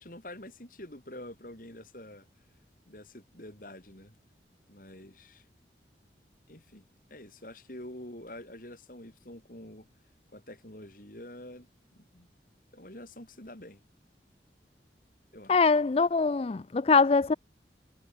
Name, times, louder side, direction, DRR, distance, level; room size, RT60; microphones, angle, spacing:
voice 1, 0.0-2.3 2.9-4.2 4.7-5.4 6.5-9.9 10.3-11.7 11.9-12.3 12.7-13.8 15.3-15.7, left 1 dB, 50° left, 5.4 m, -47 dB
voice 2, 15.5-17.3, left 4 dB, 35° left, 0.4 m, -23 dB
head